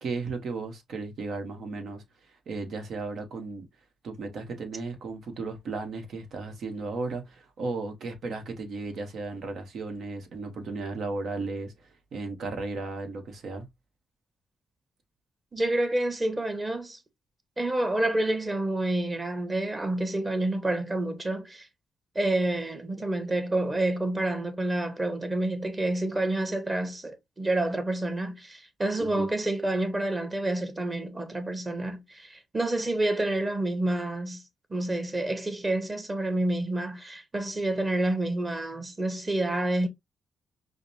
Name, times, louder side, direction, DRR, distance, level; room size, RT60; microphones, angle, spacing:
voice 1, 0.0-2.0 2.5-3.6 4.0-13.7 29.0-29.3, right 3 dB, 70° right, 1.0 m, -35 dB
voice 2, 15.5-17.0 17.6-21.7 22.1-34.4 34.7-39.9, right 1 dB, 25° right, 1.1 m, -28 dB
4.9 x 2.1 x 2.6 m
cardioid pair, 65°, 0 cm